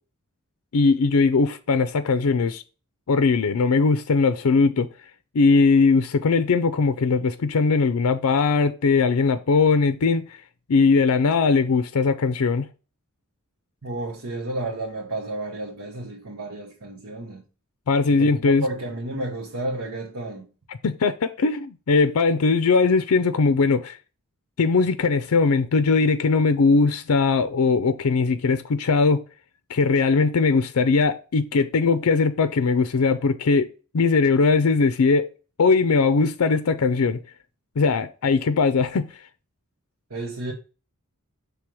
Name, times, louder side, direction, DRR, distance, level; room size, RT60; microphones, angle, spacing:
voice 1, 0.7-2.6 3.1-4.9 5.3-10.2 10.7-12.7 17.9-18.6 20.8-24.0 24.6-29.2 29.7-33.7 33.9-35.3 35.6-37.2 37.8-39.1, left 4 dB, 90° left, 0.5 m, -20 dB
voice 2, 13.8-17.5 18.1-20.5 40.1-40.5, right 2 dB, 85° right, 1.3 m, -31 dB
6.0 x 3.4 x 4.8 m
head